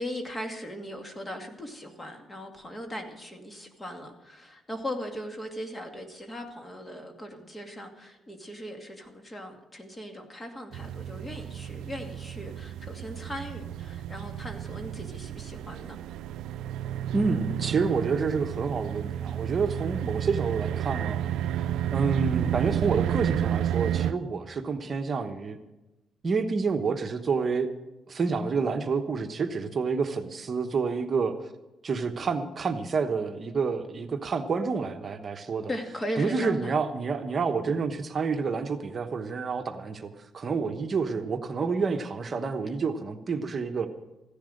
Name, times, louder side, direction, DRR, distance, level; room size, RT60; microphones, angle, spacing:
voice 1, 0.0-16.0 35.7-36.7, equal, 20° left, 4 dB, 2.3 m, -38 dB
sound 1, 10.7-24.1, right 10 dB, 85° right, 0.4 m, -31 dB
voice 2, 17.1-21.2 21.9-25.6 26.2-27.7 28.1-31.3 31.8-35.7 36.2-43.9, right 5 dB, 40° right, 6 dB, 1.1 m, -28 dB
15.0 x 10.5 x 6.6 m, 1.0 s
cardioid pair, 90°, 0 cm